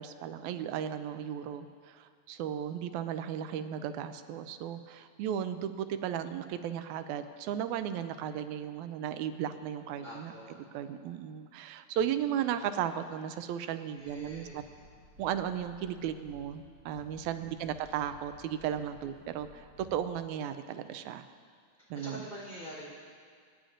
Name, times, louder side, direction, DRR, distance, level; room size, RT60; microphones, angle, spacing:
voice 1, 0.0-10.3 10.7-14.6 15.2-21.2 21.9-22.2, right 9 dB, 90° right, 10 dB, 2.0 m, -35 dB
voice 2, 9.9-10.6 14.0-14.6 17.2-17.5 21.8-22.9, equal, 20° left, -6 dB, 3.3 m, -46 dB
sound 1, 14.0-20.0, equal, 55° right, 3.3 m, -56 dB
24.0 x 10.0 x 2.6 m, 2.1 s
omnidirectional pair, 3.3 m